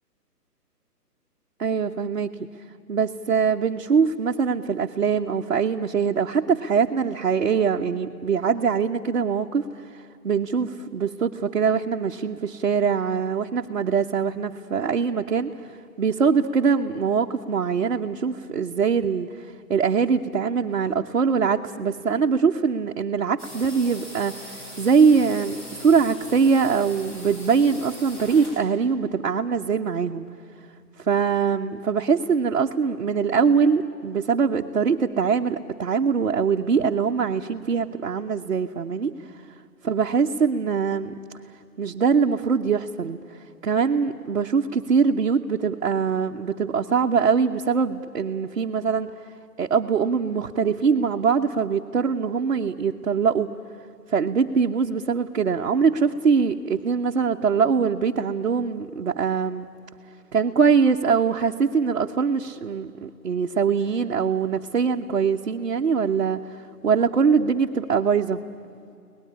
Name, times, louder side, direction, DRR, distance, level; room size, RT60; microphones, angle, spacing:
voice 1, 1.6-2.5 2.9-9.6 10.2-15.5 16.0-19.3 19.7-30.3 31.0-39.1 39.8-41.1 41.8-43.2 43.6-49.1 49.6-53.5 54.1-59.7 60.3-66.4 66.8-68.4, right 6 dB, 55° right, 1 dB, 1.0 m, -22 dB
sound 1, 23.4-28.7, equal, 30° left, 7.9 m, -41 dB
24.0 x 19.0 x 9.8 m, 2.5 s
hypercardioid pair, 165°, 49 cm